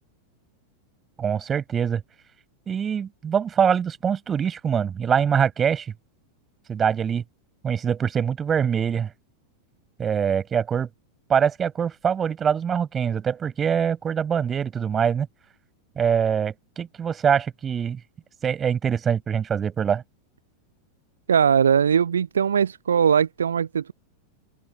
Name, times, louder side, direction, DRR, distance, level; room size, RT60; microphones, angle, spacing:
voice 1, 1.2-2.0 2.7-5.9 6.7-7.2 7.6-9.1 10.0-10.9 11.3-15.3 16.0-18.0 18.4-20.0, right 7 dB, 20° right, 7.8 m, -24 dB
voice 2, 21.3-23.9, right 7 dB, 70° right, 0.9 m, -20 dB
open air
figure-of-eight pair, 90°, 0 cm